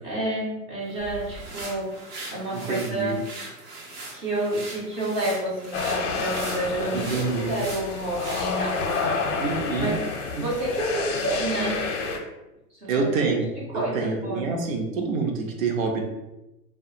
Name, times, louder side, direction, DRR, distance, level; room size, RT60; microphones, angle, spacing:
voice 1, 0.0-2.0 2.3-3.2 4.1-10.0 10.4-11.8 12.7-14.5, right 1 dB, 15° right, -6 dB, 0.3 m, -30 dB
sound 1, 0.9-9.1, right 2 dB, 85° right, 1.1 m, -40 dB
voice 2, 2.5-3.2 6.9-7.6 9.4-9.9 12.9-16.0, right 4 dB, 60° right, 2 dB, 0.7 m, -27 dB
sound 2, 5.7-12.2, left 4 dB, 55° left, 0.6 m, -29 dB
2.4 x 2.4 x 2.7 m, 0.98 s
hypercardioid pair, 120°, 45 cm